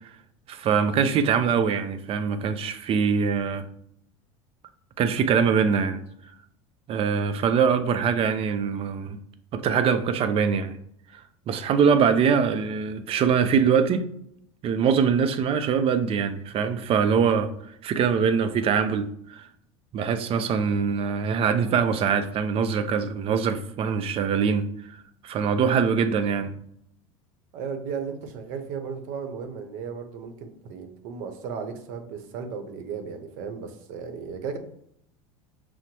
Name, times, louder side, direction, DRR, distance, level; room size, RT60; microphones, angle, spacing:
voice 1, 0.5-3.7 5.0-6.0 6.9-9.2 9.5-10.8 11.1-11.2 11.5-14.0 14.6-17.5 17.8-19.5 19.9-24.7 25.2-26.5, right 6 dB, 40° right, 0.5 m, -23 dB
voice 2, 27.5-34.6, right 6 dB, 60° right, 0.8 m, -35 dB
5.9 x 2.1 x 2.9 m
supercardioid pair, 105°, 15 cm